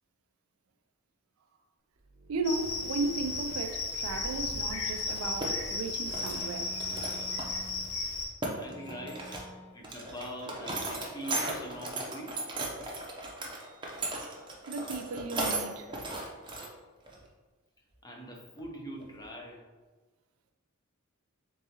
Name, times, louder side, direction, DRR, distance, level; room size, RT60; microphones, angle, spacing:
sound 1, 2.0-5.5 6.0-8.1 8.6-9.9 10.1-11.5 11.8-13.0 13.5-14.4 14.7-15.9, equal, 85° right, 0.8 m, -53 dB
voice 1, 2.3-6.8 14.7-15.9, right 3 dB, 70° right, 0.4 m, -35 dB
Cricket, 2.4-8.3, left 3 dB, 70° left, 0.9 m, -34 dB
sound 2, 5.1-5.5 5.9-6.4 6.8-7.5 7.8-7.9 8.2-9.5 9.8-16.7 17.1-17.2 18.6-18.7 19.0-19.2, right 2 dB, 20° right, 0.6 m, -36 dB
voice 2, 8.6-9.4 9.7-12.3 18.0-19.6, equal, 20° left, 0.6 m, -43 dB
3.8 x 3.6 x 2.9 m
head